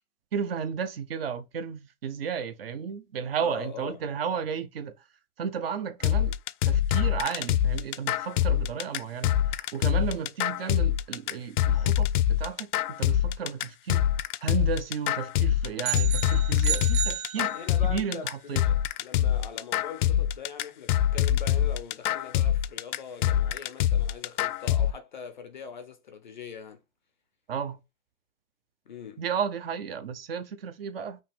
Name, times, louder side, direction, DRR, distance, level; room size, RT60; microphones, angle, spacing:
voice 1, 0.3-5.0 5.4-6.3 6.6-14.0 14.4-17.5 17.8-18.6 27.5-27.8 29.2-31.2, right 7 dB, 40° right, 0.6 m, -33 dB
voice 2, 3.4-4.0 17.4-26.8 28.9-29.2, left 6 dB, 35° left, 0.4 m, -42 dB
sound 1, 6.0-24.9, left 11 dB, 85° left, 0.6 m, -25 dB
sound 2, 15.8-18.0, right 11 dB, 85° right, 0.8 m, -32 dB
5.4 x 2.8 x 3.3 m
hypercardioid pair, 170°, 44 cm